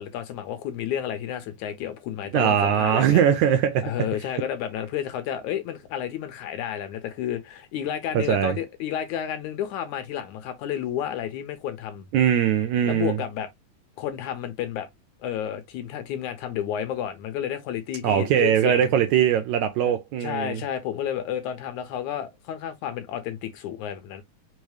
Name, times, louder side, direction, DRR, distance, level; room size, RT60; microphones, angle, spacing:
voice 1, 0.0-3.2 3.8-12.1 12.9-13.5 14.0-14.9 15.2-18.9 19.8-24.2, left 10 dB, 75° left, 2.0 m, -31 dB
voice 2, 2.3-3.9 8.3-8.6 12.1-13.2 18.0-20.6, right 9 dB, 75° right, 1.8 m, -21 dB
5.5 x 2.0 x 4.8 m
omnidirectional pair, 3.8 m